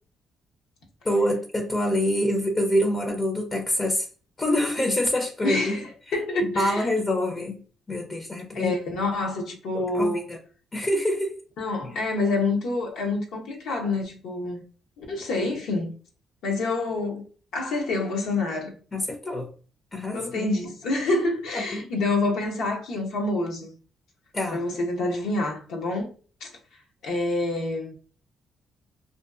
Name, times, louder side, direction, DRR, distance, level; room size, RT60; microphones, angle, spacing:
voice 1, 1.0-4.1 4.4-5.8 6.4-7.6 7.9-8.7 9.7-10.4 10.7-11.4 11.8-12.0 18.9-19.5 19.9-20.5 21.5-21.9 24.3-24.6, left 1 dB, 30° left, 0.4 m, -26 dB
voice 2, 5.4-6.9 8.5-10.3 11.6-14.6 15.0-15.9 16.4-17.2 17.5-18.7 20.1-23.7 24.5-26.1 26.4-26.5 27.0-27.9, left 2 dB, 85° left, 0.7 m, -27 dB
2.5 x 2.3 x 2.3 m
cardioid pair, 90°, 0 cm